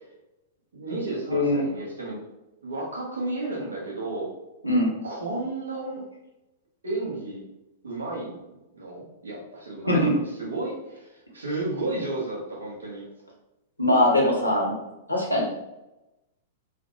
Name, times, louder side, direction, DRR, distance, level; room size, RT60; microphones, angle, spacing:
voice 1, 0.7-2.2 2.6-4.3 5.0-6.0 6.8-7.4 7.8-13.0, right 2 dB, 70° right, -3 dB, 0.8 m, -32 dB
voice 2, 1.3-1.6 4.6-4.9 9.9-10.1 13.8-14.8 15.1-15.5, left 1 dB, 90° left, -2 dB, 0.7 m, -21 dB
2.5 x 2.0 x 2.6 m, 0.95 s
figure-of-eight pair, 100°, 0 cm